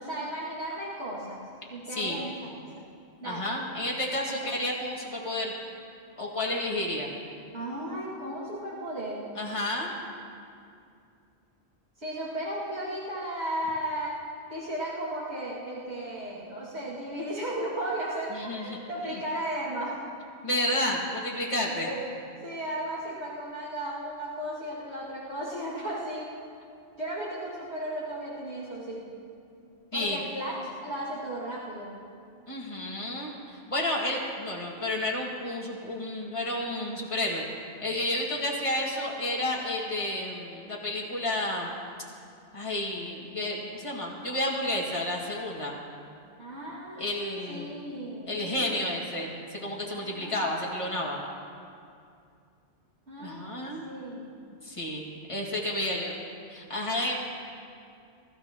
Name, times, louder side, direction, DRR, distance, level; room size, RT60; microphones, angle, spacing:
voice 1, 0.0-1.4 1.7-2.7 3.2-3.5 4.4-4.5 7.5-9.3 12.0-14.2 14.5-20.0 21.7-22.1 22.4-26.3 27.0-29.0 29.9-30.6 30.8-32.0 46.4-48.9 50.0-50.6 53.1-54.3, right 1 dB, 85° right, -9 dB, 2.7 m, -35 dB
voice 2, 3.2-5.5 6.2-7.1 9.4-9.9 18.3-19.2 20.4-21.9 29.9-30.2 32.5-37.4 37.8-41.8 42.5-45.8 46.9-47.8 48.3-51.2 53.2-53.8 54.6-56.2 56.5-57.2, left 1 dB, 30° left, -3 dB, 2.1 m, -31 dB
23.5 x 13.0 x 3.0 m, 2.4 s
omnidirectional pair, 1.1 m